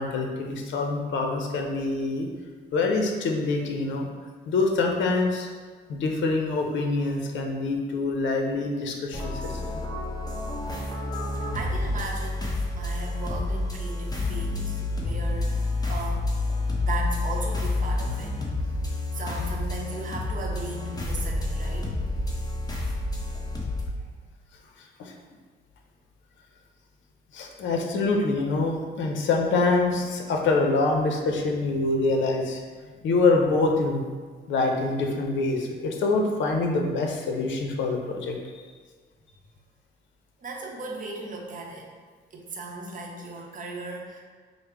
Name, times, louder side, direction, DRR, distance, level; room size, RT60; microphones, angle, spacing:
voice 1, 0.0-2.3 2.7-4.1 4.5-5.5 5.9-9.8 25.0-25.1 27.3-32.6 33.0-34.0 34.5-38.4, left 3 dB, 70° left, 2 dB, 0.6 m, -25 dB
sound 1, 9.1-23.9, left 2 dB, 20° left, 0.8 m, -29 dB
voice 2, 11.5-16.3 16.8-18.7 19.1-22.0 24.0-24.1 40.4-41.9 42.3-44.2, right 2 dB, 40° right, -1 dB, 0.7 m, -37 dB
4.8 x 2.0 x 3.3 m, 1.5 s
cardioid pair, 90°, 20 cm